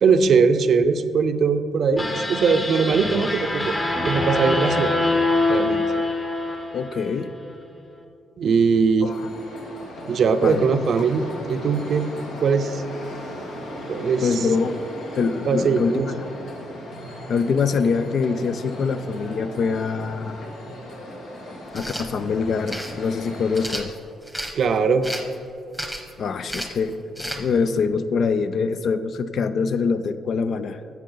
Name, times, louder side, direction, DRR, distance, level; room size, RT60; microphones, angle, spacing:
voice 1, 0.0-4.9 5.5-5.8 8.4-9.1 10.1-12.1 12.4-12.8 13.9-14.5 15.5-16.1 24.5-25.1, right 5 dB, 60° right, 10 dB, 0.6 m, -20 dB
sound 1, 2.0-7.3, left 2 dB, 25° left, 1.2 m, -24 dB
voice 2, 6.7-7.3 9.0-9.3 10.4-10.6 14.2-14.8 15.2-16.2 17.3-20.4 21.7-24.0 26.2-30.8, left 5 dB, 60° left, 11 dB, 0.5 m, -24 dB
sound 2, 9.1-23.7, left 1 dB, 75° left, 2.0 m, -37 dB
sound 3, 21.7-22.1 22.7-22.9 23.5-24.5 25.0-25.3 25.7-26.1 26.5-26.8 27.2-27.4, equal, 5° left, 1.1 m, -32 dB
12.0 x 7.5 x 3.9 m, 2.7 s
cardioid pair, 90°, 0 cm